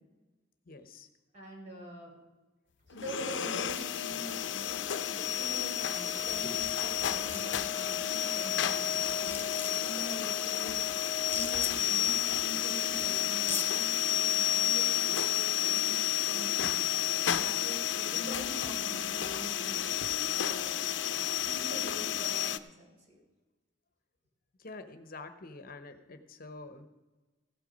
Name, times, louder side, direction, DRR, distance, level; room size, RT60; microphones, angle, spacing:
voice 1, 0.7-1.1 18.1-18.6 24.6-26.9, left 3 dB, 50° left, 9 dB, 0.9 m, -47 dB
voice 2, 1.3-2.1 2.9-10.8 11.3-15.9 16.3-16.8 17.3-19.8 20.1-20.7 21.1-23.2, equal, 40° right, -1 dB, 4.7 m, -45 dB
sound 1, 3.0-22.6, left 11 dB, 80° left, 0.6 m, -31 dB
sound 2, 6.3-6.7 7.0-7.4 8.6-8.7 9.0-9.9 11.2-11.7 12.8-12.9 13.3-13.7, left 4 dB, 10° left, 1.1 m, -37 dB
16.0 x 8.2 x 5.1 m, 1.2 s
head